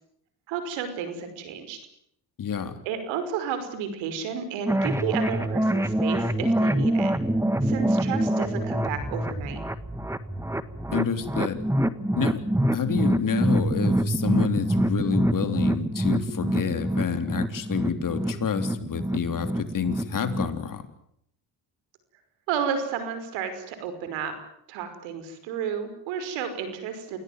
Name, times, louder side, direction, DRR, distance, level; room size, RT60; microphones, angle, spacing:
voice 1, 0.5-1.8 2.8-7.1 7.6-9.6 22.5-24.3 24.7-27.2, right 7 dB, 90° right, 10 dB, 5.5 m, -32 dB
voice 2, 2.4-2.7 10.9-11.6 12.2-12.4 12.7-20.8, left 7 dB, 45° left, 9 dB, 3.5 m, -28 dB
sound 1, 4.7-20.6, right 1 dB, 5° right, 1.6 m, -26 dB
28.5 x 17.5 x 9.5 m, 0.73 s
cardioid pair, 85°, 44 cm